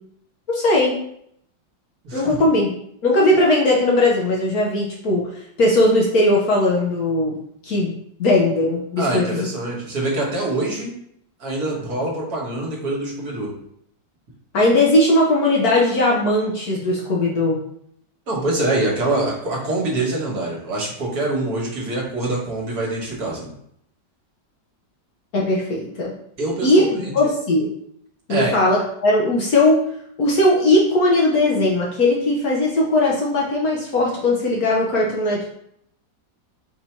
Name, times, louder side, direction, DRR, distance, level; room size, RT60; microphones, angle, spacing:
voice 1, 0.5-0.9 2.1-2.7 3.0-7.3 7.6-7.9 8.2-9.5 14.5-17.6 25.3-26.1 26.6-27.7 28.3-29.8 30.2-35.5, left 1 dB, 60° left, -3 dB, 1.1 m, -18 dB
voice 2, 2.0-2.4 9.0-10.9 11.4-13.5 18.3-23.5 26.4-27.3 28.3-28.6, right 2 dB, 55° right, -3 dB, 1.6 m, -25 dB
4.4 x 2.7 x 4.4 m, 0.71 s
omnidirectional pair, 2.1 m